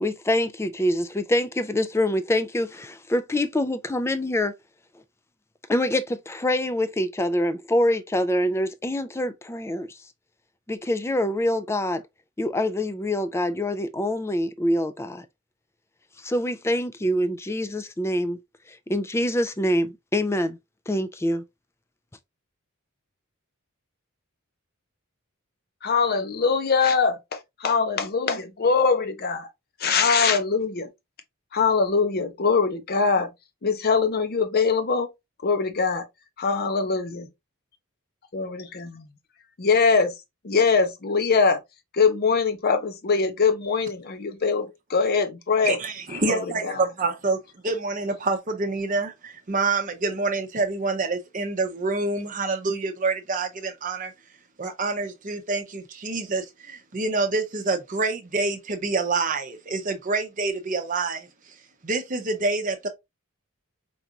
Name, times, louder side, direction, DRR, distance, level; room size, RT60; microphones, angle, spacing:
voice 1, 0.0-4.5 5.7-10.0 10.7-12.0 12.4-15.3 16.2-18.4 18.7-20.6 20.9-21.4, left 1 dB, 10° left, 0.3 m, -25 dB
voice 2, 25.8-29.5 29.8-30.9 31.5-33.3 33.6-35.1 35.4-36.1 36.4-37.3 38.3-39.0 39.6-40.1 40.4-41.6 41.9-45.8 46.1-46.9, left 5 dB, 45° left, 0.6 m, -22 dB
voice 3, 45.6-47.4 47.6-54.1 54.6-61.3 61.8-62.9, right 3 dB, 35° right, 0.7 m, -27 dB
4.5 x 2.5 x 2.7 m
head